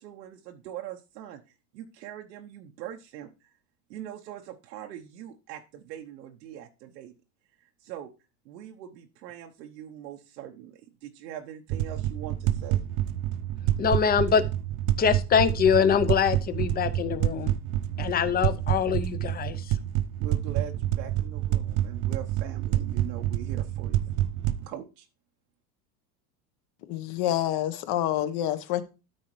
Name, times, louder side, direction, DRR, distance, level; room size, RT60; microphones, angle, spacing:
voice 1, 0.0-3.5 3.9-7.1 7.6-8.1 8.4-12.8 20.2-24.1 24.7-25.1, right 11 dB, 80° right, 1.0 m, -42 dB
sound 1, 11.7-24.7, right 13 dB, 45° right, 0.6 m, -28 dB
voice 2, 13.8-14.4 15.0-17.5 18.0-19.8, left 7 dB, 20° left, 0.6 m, -24 dB
voice 3, 26.9-28.8, left 12 dB, 50° left, 1.1 m, -27 dB
13.0 x 4.7 x 3.1 m
supercardioid pair, 115°, 49 cm